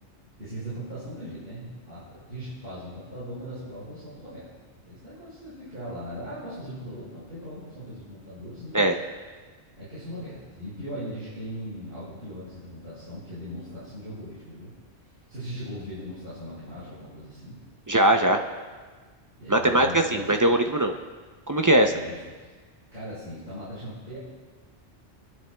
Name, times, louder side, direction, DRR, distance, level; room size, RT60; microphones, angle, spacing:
voice 1, 0.4-4.5 4.8-8.9 9.8-14.7 15.3-17.6 19.4-20.4 21.6-22.5 22.9-24.2, equal, 60° right, -13 dB, 5.1 m, -39 dB
voice 2, 17.9-18.4 19.5-20.9 21.5-21.9, right 1 dB, 30° right, 5 dB, 0.4 m, -20 dB
27.5 x 10.5 x 2.2 m, 1.4 s
omnidirectional pair, 1.1 m